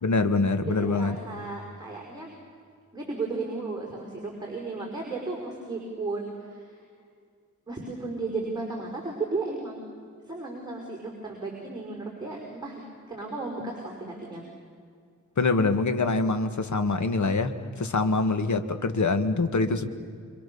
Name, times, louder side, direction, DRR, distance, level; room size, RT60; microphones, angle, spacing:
voice 1, 0.0-1.2 15.4-19.9, left 3 dB, 70° left, 9 dB, 1.9 m, -25 dB
voice 2, 0.7-2.3 2.9-6.8 7.7-9.8 10.3-12.8 13.1-14.5, right 3 dB, 15° right, -2 dB, 5.5 m, -34 dB
27.0 x 25.5 x 7.1 m, 2.2 s
wide cardioid pair, 95°, 31 cm